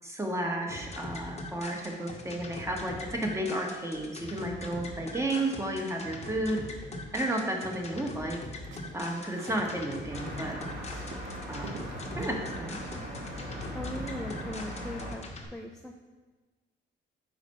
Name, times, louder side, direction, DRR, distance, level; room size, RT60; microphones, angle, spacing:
voice 1, 0.0-6.6 7.1-8.4 8.9-10.6 11.5-11.7 12.1-12.8, right 1 dB, 15° right, 1 dB, 1.1 m, -32 dB
sound 1, 0.7-15.4, left 2 dB, 35° left, 1.0 m, -42 dB
sound 2, 8.3-9.8 10.0-12.5, right 4 dB, 70° right, 0.7 m, -46 dB
sound 3, 10.1-15.2, equal, 45° right, 1.7 m, -39 dB
voice 2, 13.7-15.2 15.5-15.9, left 1 dB, 5° left, 2 dB, 0.4 m, -39 dB
5.0 x 4.1 x 5.3 m, 1.3 s
cardioid pair, 90°, 20 cm